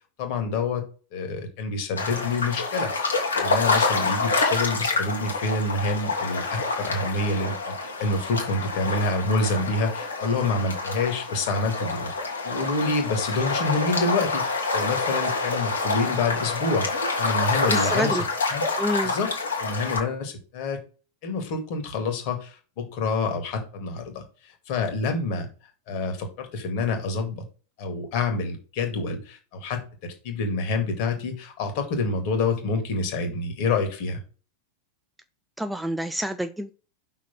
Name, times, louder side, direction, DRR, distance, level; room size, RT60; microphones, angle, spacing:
voice 1, 0.2-0.8 1.1-12.1 12.4-16.9 17.2-18.2 18.5-18.6 19.0-19.3 19.6-20.8 21.2-25.5 25.9-27.4 27.8-34.2, left 3 dB, 45° left, 5 dB, 2.0 m, -27 dB
sound 1, 2.0-20.0, left 3 dB, 75° left, 1.9 m, -27 dB
voice 2, 17.7-18.2 18.8-19.1 35.6-36.7, equal, 5° right, 10 dB, 0.5 m, -28 dB
5.8 x 4.1 x 6.1 m, 0.36 s
figure-of-eight pair, 90°, 0 cm